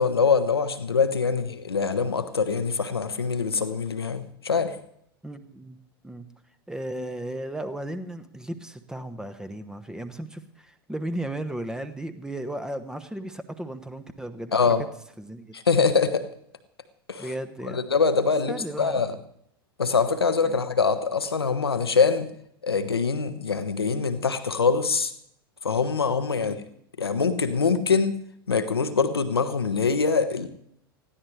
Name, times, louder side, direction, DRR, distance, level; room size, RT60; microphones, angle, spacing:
voice 1, 0.0-4.8 14.5-14.9 15.5-16.3 17.1-17.3 17.7-19.1 19.8-22.3 22.6-25.1 25.6-26.6 27.0-28.2 28.5-30.5, left 5 dB, 80° left, 10 dB, 1.1 m, -24 dB
voice 2, 5.2-5.8 6.0-6.3 6.7-14.7 15.2-15.6 17.2-17.8 18.5-19.1 20.4-20.6 26.4-26.7, right 1 dB, 5° right, 10 dB, 1.0 m, -35 dB
20.0 x 14.5 x 3.2 m, 0.72 s
figure-of-eight pair, 90°, 13 cm